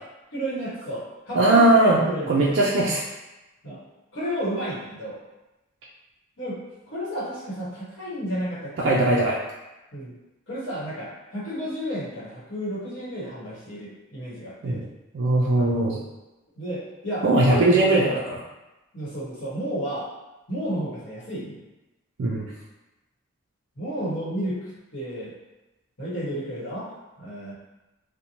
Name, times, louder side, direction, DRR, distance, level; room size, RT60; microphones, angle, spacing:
voice 1, 0.3-2.6 3.6-3.8 4.1-5.2 6.4-6.6 6.9-9.1 9.9-10.1 10.5-14.8 16.6-18.2 18.9-20.1 20.5-21.6 23.8-25.3 26.0-27.5, equal, 60° left, -8 dB, 1.0 m, -32 dB
voice 2, 1.3-2.0 2.3-3.0 8.8-9.4 14.6-14.8 15.1-16.0 17.2-18.2 22.2-22.5, right 2 dB, 55° right, -5 dB, 0.3 m, -19 dB
2.6 x 2.1 x 2.8 m, 1.0 s
head